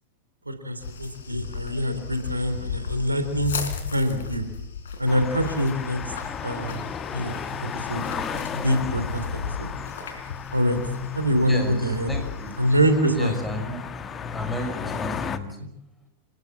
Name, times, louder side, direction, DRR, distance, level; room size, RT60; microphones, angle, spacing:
voice 1, 0.5-3.5 3.9-4.4 5.0-6.1 6.4-6.8 7.1-7.4 7.7-8.0 8.3-9.7 10.5-10.8 11.1-12.1 12.6-13.3, equal, 85° right, 8 dB, 3.7 m, -24 dB
sound 1, 0.8-12.9, left 6 dB, 65° left, 3.6 m, -36 dB
sound 2, 5.1-15.4, left 7 dB, 25° left, 1.6 m, -34 dB
voice 2, 11.5-12.5 13.1-13.8 14.3-15.7, left 1 dB, 5° left, 4 dB, 6.0 m, -33 dB
28.0 x 19.0 x 7.6 m, 0.72 s
figure-of-eight pair, 90°, 0 cm